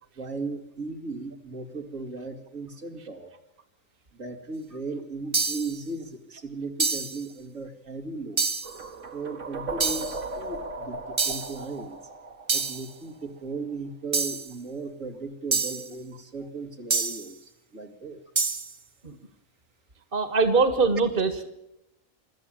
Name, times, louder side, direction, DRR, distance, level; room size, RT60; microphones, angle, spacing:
voice 1, 0.2-3.3 4.1-8.5 9.1-12.0 12.5-18.2, right 3 dB, 80° right, 3 dB, 2.8 m, -37 dB
sound 1, 5.3-5.8 6.8-7.2 8.4-8.8 9.8-10.2 11.2-11.6 12.5-12.9 14.1-14.5 15.5-15.9 16.9-17.3 18.4-18.7, right 4 dB, 30° right, 0.6 m, -27 dB
sound 2, 8.6-13.6, right 3 dB, 65° right, 2.1 m, -37 dB
voice 2, 20.1-21.5, right 4 dB, 45° right, 9 dB, 2.0 m, -23 dB
24.5 x 13.5 x 8.9 m, 0.89 s
omnidirectional pair, 1.3 m